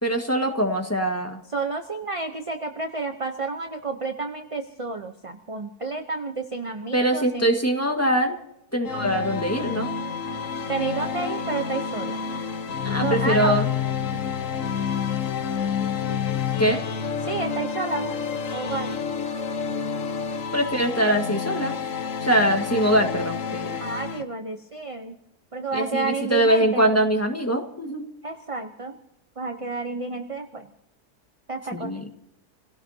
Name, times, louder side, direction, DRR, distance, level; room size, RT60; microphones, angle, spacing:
voice 1, 0.0-1.4 6.9-8.4 8.7-9.9 12.8-13.6 16.6-16.8 20.5-21.8 22.2-23.8 25.7-28.1 31.7-32.1, right 1 dB, 10° left, 3 dB, 1.6 m, -23 dB
voice 2, 1.5-7.5 10.7-12.2 13.0-13.6 14.1-14.2 17.2-18.1 18.5-19.0 23.8-25.1 25.5-26.9 28.2-28.9 29.4-30.7 31.5-31.9, right 3 dB, 30° right, 5 dB, 0.6 m, -30 dB
sound 1, 8.8-24.2, left 7 dB, 55° left, 1.3 m, -29 dB
28.5 x 17.0 x 2.8 m, 0.84 s
omnidirectional pair, 1.7 m